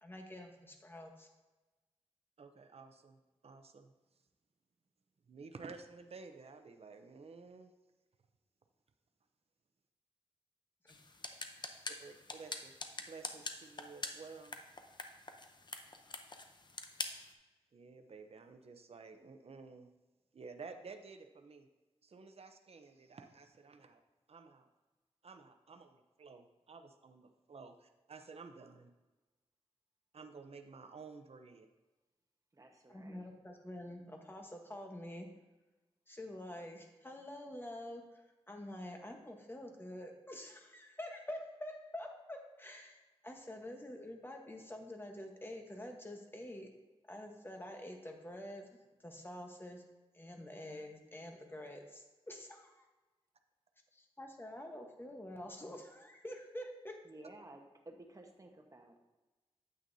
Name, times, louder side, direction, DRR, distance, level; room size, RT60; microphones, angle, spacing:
voice 1, 0.0-1.3 10.8-10.9 32.9-35.3 36.1-43.0 43.2-46.7 47.1-48.7 49.0-49.8 50.1-52.8 53.9-57.0, left 1 dB, 20° left, 3 dB, 1.1 m, -47 dB
voice 2, 2.4-3.9 5.3-7.7 12.0-12.8 13.1-14.6 17.7-19.9 20.3-21.7 22.0-24.0 24.3-24.7 25.2-28.9 30.1-31.7, right 4 dB, 60° right, 7 dB, 0.7 m, -53 dB
sound 1, 10.9-17.3, left 3 dB, 40° left, 0.7 m, -46 dB
voice 3, 32.5-33.3 57.0-59.0, right 2 dB, 30° right, 3 dB, 1.1 m, -55 dB
9.0 x 8.2 x 2.7 m, 1.2 s
wide cardioid pair, 105°, 11 cm